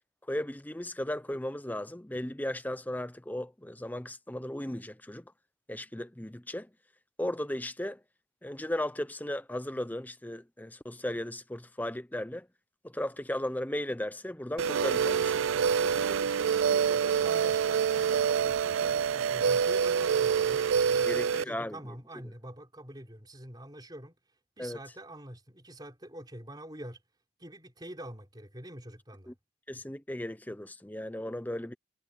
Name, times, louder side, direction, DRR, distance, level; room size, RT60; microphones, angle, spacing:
voice 1, 0.3-5.2 5.7-6.7 7.2-8.0 8.4-12.5 12.8-15.5 21.1-21.8 24.6-24.8 29.3-29.4 29.7-31.7, left 1 dB, 10° left, 0.8 m, -36 dB
sound 1, 14.6-21.4, right 7 dB, 80° right, 0.4 m, -26 dB
voice 2, 15.7-24.2 24.6-27.0 27.4-29.3, right 1 dB, 20° right, 4.2 m, -46 dB
head